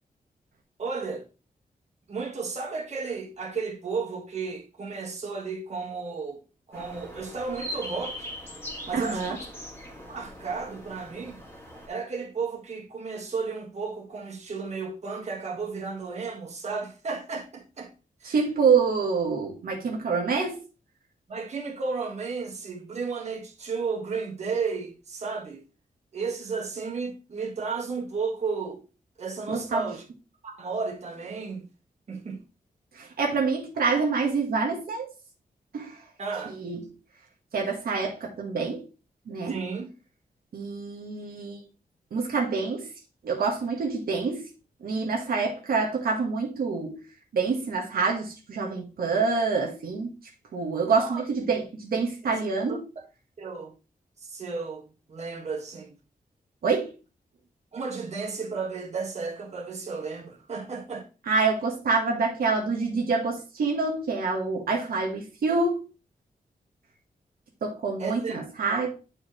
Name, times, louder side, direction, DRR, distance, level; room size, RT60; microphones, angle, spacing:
voice 1, 0.8-1.2 2.1-6.4 6.7-8.3 8.9-9.4 10.1-11.4 11.9-17.9 18.2-18.4 21.3-25.6 26.1-28.8 29.2-30.0 30.4-31.7 32.1-32.4 36.2-36.6 39.5-39.9 51.0-51.2 52.2-52.3 52.7-53.0 53.4-53.7 54.3-56.0 57.7-61.1 68.0-68.4 68.7-68.9, right 4 dB, 50° right, 1.8 m, -33 dB
sound 1, 6.7-11.9, equal, 15° left, 2.1 m, -40 dB
voice 2, 8.9-9.4 18.2-20.6 29.5-29.9 33.0-35.1 35.7-35.9 36.5-36.9 37.5-38.8 39.3-39.6 40.5-41.6 42.1-42.9 43.2-44.5 44.8-47.0 47.3-50.1 50.5-52.9 56.6-56.9 61.3-65.8 67.6-68.9, right 4 dB, 80° right, 1.4 m, -26 dB
9.6 x 4.8 x 3.2 m
wide cardioid pair, 175°, 15 cm